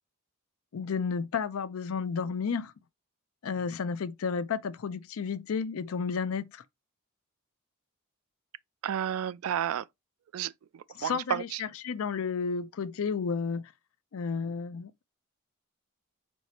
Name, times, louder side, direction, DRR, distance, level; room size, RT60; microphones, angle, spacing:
voice 1, 0.7-2.7 3.4-6.6 11.0-13.7 14.1-15.1, left 5 dB, 70° left, 0.4 m, -32 dB
voice 2, 8.8-9.8 10.3-11.6, right 9 dB, 70° right, 0.3 m, -32 dB
4.5 x 3.3 x 2.8 m
head